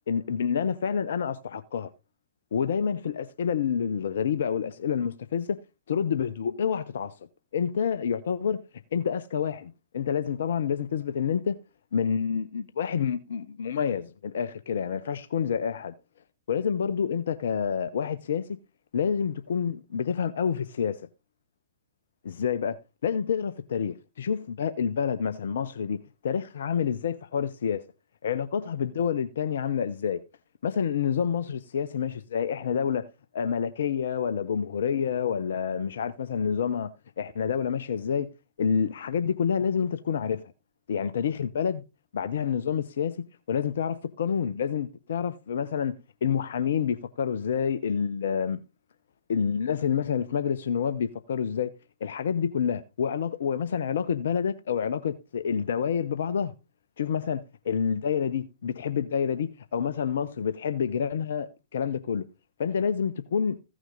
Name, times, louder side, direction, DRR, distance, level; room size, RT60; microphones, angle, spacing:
voice 1, 0.1-1.9 2.5-5.6 5.9-7.1 7.5-8.6 8.9-11.6 11.9-15.9 16.5-18.5 18.9-21.0 22.2-22.8 23.0-27.8 28.2-30.2 30.6-33.1 33.3-38.3 38.6-40.5 40.9-41.8 42.1-46.0 46.2-48.6 49.3-51.7 52.0-56.5 57.0-62.3 62.6-63.6, left 7 dB, 65° left, 0.7 m, -28 dB
15.5 x 6.2 x 3.9 m
figure-of-eight pair, 115°, 0 cm